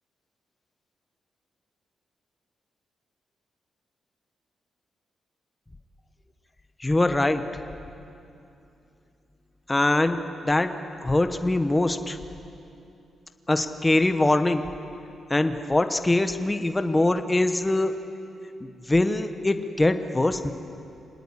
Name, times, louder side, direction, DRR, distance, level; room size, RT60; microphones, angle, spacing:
voice 1, 6.8-7.4 9.7-10.7 11.0-12.2 13.5-14.7 15.3-18.0 18.6-20.5, left 2 dB, 10° left, 8 dB, 1.1 m, -23 dB
26.0 x 18.5 x 9.9 m, 2.7 s
wide cardioid pair, 160°, 0 cm